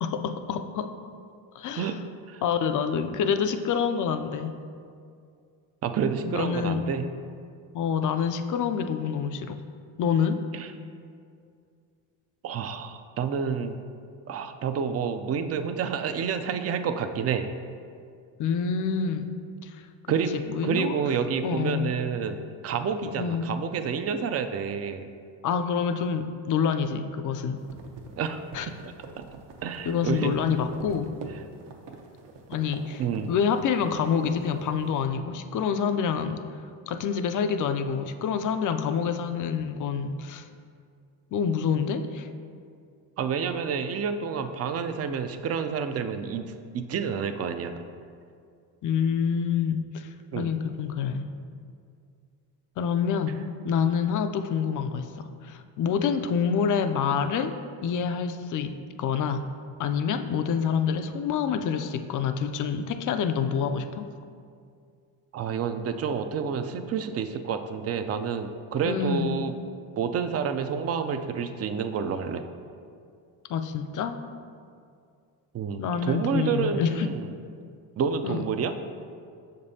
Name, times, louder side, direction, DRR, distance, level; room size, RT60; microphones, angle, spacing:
voice 1, 0.0-0.9 1.6-1.9 2.4-4.6 6.2-6.9 7.7-9.6 10.0-10.4 18.4-19.3 19.6-19.8 20.3-21.0 21.4-21.9 23.0-23.5 25.4-27.6 28.5-28.7 29.8-31.1 32.5-33.0 33.3-36.4 36.9-40.5 41.3-42.3 48.8-50.1 50.4-51.3 52.8-58.7 59.0-59.5 59.8-64.1 68.8-69.4 73.5-74.2 75.8-77.1 78.2-78.4, left 6 dB, 45° left, 9 dB, 0.4 m, -27 dB
voice 2, 5.8-7.0 10.5-10.7 12.4-13.8 14.3-17.5 20.1-20.4 20.6-25.0 28.2-28.4 28.7-29.3 29.6-30.4 33.0-33.3 43.2-46.4 46.7-47.9 50.3-50.5 65.3-69.5 70.0-72.4 75.5-77.3 78.0-78.7, right 6 dB, 35° right, 8 dB, 0.4 m, -29 dB
sound 1, 27.6-35.0, right 4 dB, 65° right, 0.9 m, -43 dB
6.7 x 5.2 x 2.7 m, 2.3 s
cardioid pair, 85°, 45 cm